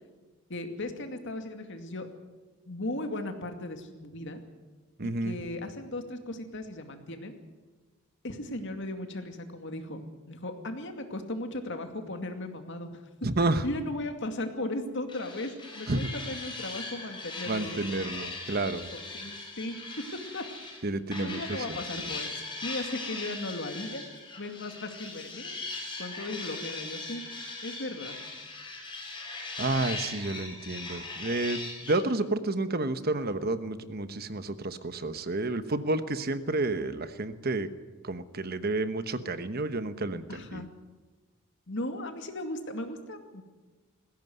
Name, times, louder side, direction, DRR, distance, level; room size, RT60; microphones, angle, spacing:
voice 1, 0.5-2.1 2.7-4.4 5.2-7.4 8.2-13.0 13.6-17.8 18.9-19.8 20.1-20.4 21.2-24.0 24.4-27.2 27.6-28.2 40.3-40.7 41.7-43.4, left 1 dB, 55° left, 6 dB, 2.4 m, -37 dB
voice 2, 5.0-5.4 13.2-13.6 15.9-16.1 17.5-18.9 20.8-21.4 21.7-22.0 29.6-37.7 38.0-40.6, right 2 dB, 45° right, 11 dB, 1.1 m, -30 dB
sound 1, 15.1-20.8 21.1-32.0, left 3 dB, 20° left, 5.9 m, -39 dB
20.0 x 17.0 x 9.5 m, 1.3 s
head